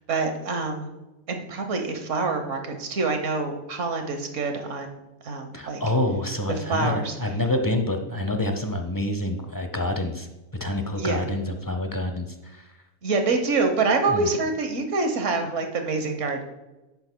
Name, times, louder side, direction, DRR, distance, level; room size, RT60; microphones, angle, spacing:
voice 1, 0.1-0.9 1.3-5.8 6.5-7.2 10.9-11.2 13.0-16.4, right 3 dB, 65° right, 5 dB, 1.4 m, -26 dB
voice 2, 5.5-10.3 10.6-12.6 14.1-14.3, left 1 dB, 20° left, 4 dB, 0.5 m, -27 dB
11.0 x 8.9 x 2.3 m, 1.1 s
omnidirectional pair, 1.4 m